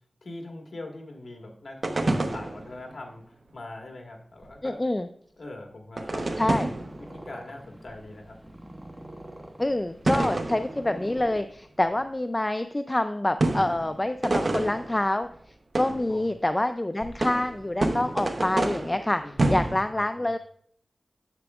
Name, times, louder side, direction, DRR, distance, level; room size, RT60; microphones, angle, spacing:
voice 1, 0.2-4.8 5.4-6.6 7.0-8.6 16.1-16.4 19.2-19.3 19.9-20.3, left 2 dB, 70° left, 1 dB, 1.6 m, -42 dB
sound 1, 1.8-2.9 4.4-4.5 6.0-7.1 7.9-8.0 10.1-11.4 11.8-11.9 13.4-15.3 15.8-16.2 17.0-19.8, right 2 dB, 50° right, 0.8 m, -28 dB
voice 2, 4.6-5.1 6.4-6.7 9.6-15.3 15.7-19.2 19.5-20.4, left 1 dB, 20° left, 9 dB, 0.3 m, -26 dB
Purr, 6.6-12.0, right 1 dB, 15° right, 0.9 m, -45 dB
9.7 x 7.7 x 2.4 m, 0.64 s
wide cardioid pair, 80°, 0 cm